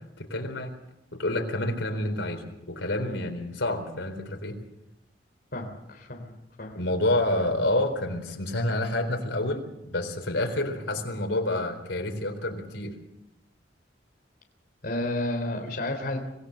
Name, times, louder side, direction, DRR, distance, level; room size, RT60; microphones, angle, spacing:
voice 1, 0.2-0.7 1.1-4.6 6.7-13.0, left 1 dB, 90° left, 4 dB, 4.2 m, -28 dB
voice 2, 5.5-6.9 14.8-16.2, left 1 dB, 55° left, 2 dB, 3.6 m, -32 dB
25.5 x 17.5 x 6.5 m, 0.87 s
head